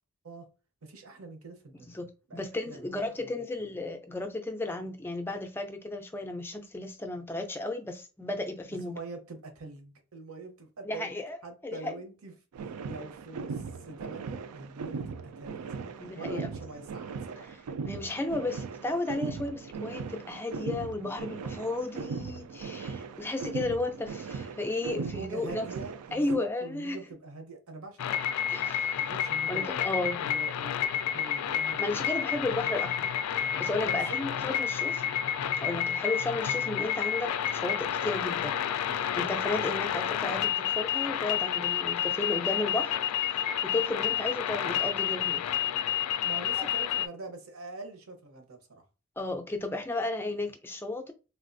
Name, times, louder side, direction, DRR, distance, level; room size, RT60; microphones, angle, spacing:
voice 1, 0.8-2.0 2.3-3.3 8.8-12.3 12.6-17.5 24.9-28.6 28.9-29.8 30.2-32.7 33.8-34.2 46.2-48.8, right 3 dB, 70° right, 0.8 m, -44 dB
voice 2, 1.9-9.0 10.8-11.9 15.8-16.5 17.9-25.7 26.1-27.0 28.5-29.0 29.5-30.2 31.8-33.0 33.4-35.0 35.6-38.5 38.9-43.0 43.3-45.4 46.6-46.7 49.2-51.1, left 2 dB, 10° left, 0.4 m, -34 dB
sound 1, 12.5-26.4, right 5 dB, 85° right, 0.3 m, -39 dB
sound 2, 28.0-47.1, left 9 dB, 90° left, 0.3 m, -30 dB
3.4 x 2.3 x 2.5 m
head